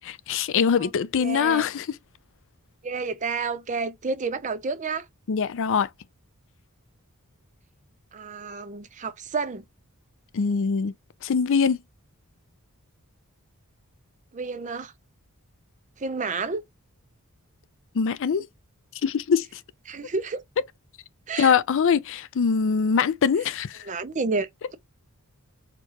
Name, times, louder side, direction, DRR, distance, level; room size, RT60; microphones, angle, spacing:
voice 1, 0.0-1.9 5.3-5.9 10.3-10.9 11.2-11.8 17.9-18.5 19.0-19.5 21.4-23.8, left 6 dB, 60° left, 0.4 m, -23 dB
voice 2, 1.2-1.6 2.8-5.1 8.1-9.6 14.3-14.9 16.0-16.6 19.9-20.4 21.3-21.6 23.9-24.8, right 4 dB, 35° right, 0.6 m, -30 dB
4.5 x 2.4 x 2.8 m
head